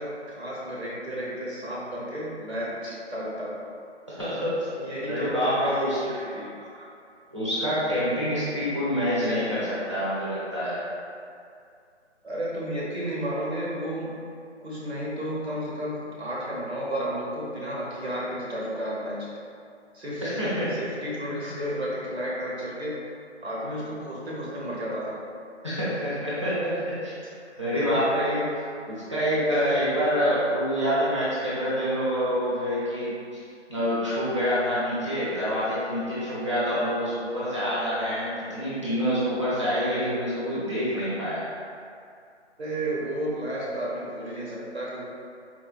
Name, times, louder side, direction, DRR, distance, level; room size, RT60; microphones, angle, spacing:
voice 1, 0.0-3.7 4.8-6.9 12.2-14.2 14.6-19.3 19.9-20.2 20.8-23.0 23.4-25.2 27.2-27.3 28.9-29.0 42.6-45.0, equal, 65° right, -6 dB, 0.9 m, -32 dB
voice 2, 4.2-4.7 5.0-6.0 7.3-10.8 20.2-20.7 25.6-27.1 27.6-33.2 33.7-41.4, equal, 25° right, -11 dB, 0.6 m, -26 dB
4.3 x 2.1 x 2.4 m, 2.4 s
figure-of-eight pair, 170°, 35 cm